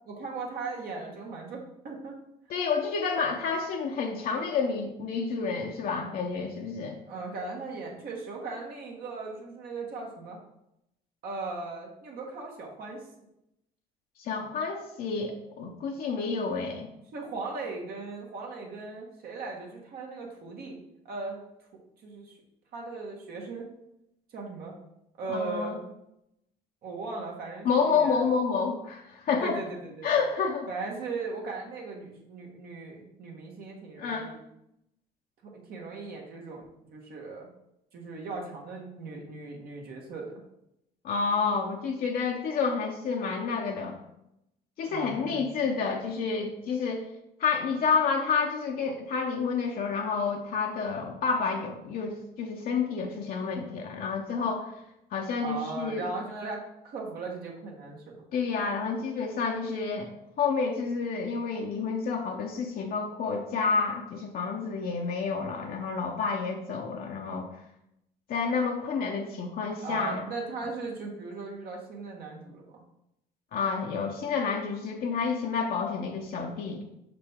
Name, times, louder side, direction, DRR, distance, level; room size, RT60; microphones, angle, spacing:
voice 1, 0.0-2.2 7.1-10.4 11.2-13.0 17.1-20.8 21.0-21.4 22.0-22.3 22.7-23.7 24.3-24.8 25.2-25.8 26.8-28.2 29.4-30.2 30.7-34.4 35.4-37.5 37.9-40.4 44.9-45.4 55.4-58.2 69.8-72.8, right 3 dB, 65° right, -1 dB, 1.4 m, -38 dB
voice 2, 2.5-7.0 14.2-16.9 25.3-25.8 27.6-29.6 30.0-30.7 34.0-34.3 41.0-44.0 44.8-47.0 47.4-54.7 55.1-56.0 58.3-60.1 60.4-67.5 68.3-70.3 73.5-76.8, left 5 dB, 60° left, 1 dB, 0.7 m, -29 dB
5.5 x 5.0 x 3.6 m, 0.83 s
cardioid pair, 110°, 17 cm